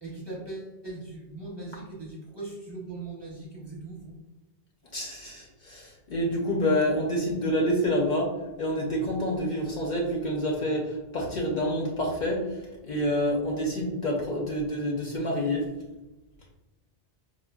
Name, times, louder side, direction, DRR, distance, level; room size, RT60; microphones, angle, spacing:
voice 1, 0.0-4.2, right 2 dB, 30° right, -5 dB, 0.7 m, -39 dB
voice 2, 4.9-15.7, equal, 55° left, -2 dB, 0.6 m, -28 dB
4.5 x 2.1 x 2.2 m, 1.1 s
omnidirectional pair, 1.0 m